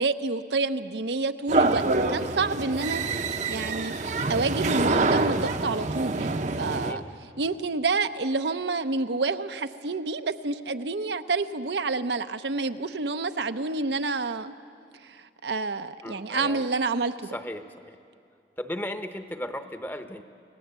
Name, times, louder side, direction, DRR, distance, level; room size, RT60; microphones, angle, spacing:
voice 1, 0.0-1.8 2.1-3.0 3.5-3.9 4.3-7.0 7.4-14.5 15.0-17.4, right 3 dB, 75° right, 9 dB, 0.7 m, -28 dB
sound 1, 1.5-6.9, right 3 dB, 40° right, 0.8 m, -26 dB
voice 2, 6.8-7.1 16.0-16.7 17.3-18.0 18.6-20.2, left 1 dB, 10° left, 8 dB, 0.9 m, -36 dB
28.5 x 18.0 x 8.1 m, 2.4 s
head